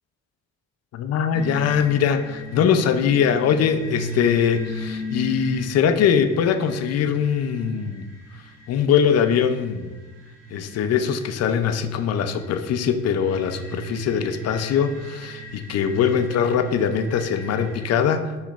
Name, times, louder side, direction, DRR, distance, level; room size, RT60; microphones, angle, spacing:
voice 1, 0.9-8.0 8.7-9.9 10.5-18.5, left 7 dB, 55° left, 8 dB, 0.4 m, -22 dB
sound 1, 1.3-17.9, right 1 dB, 55° right, 1.0 m, -38 dB
5.8 x 3.1 x 2.4 m, 1.2 s
cardioid pair, 90°, 30 cm